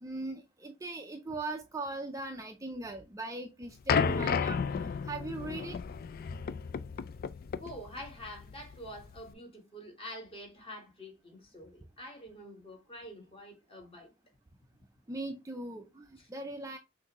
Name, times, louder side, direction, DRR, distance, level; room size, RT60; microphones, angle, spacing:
voice 1, 0.0-5.8 15.1-16.8, right 2 dB, 15° right, 0.4 m, -40 dB
sound 1, 3.9-9.3, left 6 dB, 45° left, 0.3 m, -33 dB
voice 2, 7.6-14.1 16.2-16.3, equal, 30° left, 1.5 m, -46 dB
6.0 x 2.6 x 3.0 m
head